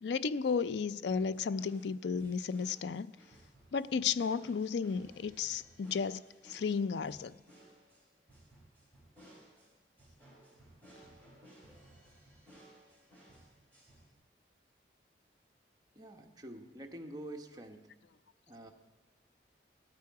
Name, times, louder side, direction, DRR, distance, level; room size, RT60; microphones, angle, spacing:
voice 1, 0.0-3.1 3.7-7.4, left 5 dB, 75° left, 0.4 m, -33 dB
sound 1, 1.0-14.1, right 1 dB, 10° left, 4.8 m, -59 dB
voice 2, 15.9-17.9 18.5-18.7, right 1 dB, 20° right, 1.1 m, -47 dB
16.5 x 13.0 x 4.8 m
head